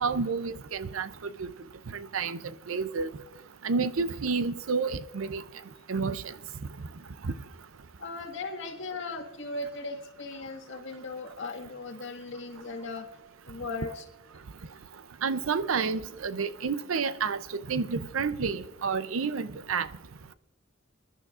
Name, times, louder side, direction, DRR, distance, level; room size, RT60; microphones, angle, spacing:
voice 1, 0.0-1.1 1.4-1.5 1.9-2.4 2.7-3.1 3.6-5.4 5.9-6.3 7.2-7.3 15.2-17.4 17.7-19.9, right 5 dB, 75° right, 0.6 m, -29 dB
voice 2, 8.0-13.1 13.5-14.0, left 3 dB, 65° left, 1.8 m, -37 dB
26.0 x 11.5 x 2.5 m
head